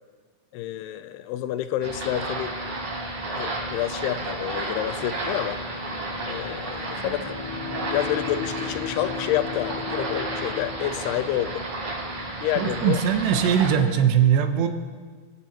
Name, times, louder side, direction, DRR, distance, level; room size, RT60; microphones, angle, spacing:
voice 1, 0.5-2.5 3.4-5.6 6.3-7.4 7.9-11.7 12.4-13.0, left 12 dB, 85° left, 11 dB, 2.6 m, -28 dB
sound 1, 1.8-13.7, right 2 dB, 45° right, 4.6 m, -32 dB
Bowed string instrument, 6.9-12.0, left 6 dB, 55° left, 5.0 m, -36 dB
voice 2, 12.6-14.7, right 8 dB, 85° right, 7 dB, 3.2 m, -20 dB
26.0 x 17.0 x 3.0 m, 1.5 s
omnidirectional pair, 4.8 m